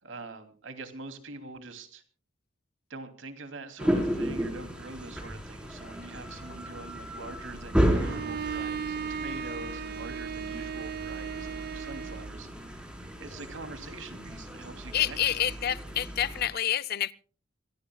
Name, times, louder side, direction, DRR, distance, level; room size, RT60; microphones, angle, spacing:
voice 1, 0.0-2.0 2.9-15.6, right 3 dB, 75° right, 2.9 m, -44 dB
sound 1, 3.8-16.5, equal, 5° right, 4.2 m, -33 dB
Bowed string instrument, 7.9-12.4, right 7 dB, 50° right, 0.7 m, -36 dB
voice 2, 14.9-17.1, left 10 dB, 50° left, 0.6 m, -28 dB
26.5 x 17.5 x 2.3 m
head